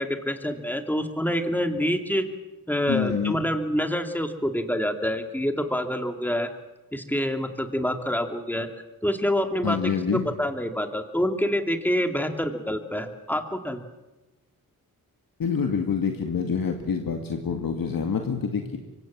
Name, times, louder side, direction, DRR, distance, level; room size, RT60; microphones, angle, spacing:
voice 1, 0.0-2.3 2.7-6.5 6.9-8.7 9.0-13.8, equal, 5° left, 6 dB, 2.4 m, -27 dB
voice 2, 2.9-3.4 9.6-10.2 15.4-18.8, left 6 dB, 75° left, 4 dB, 2.2 m, -26 dB
25.5 x 24.0 x 7.5 m, 1.1 s
wide cardioid pair, 90°, 35 cm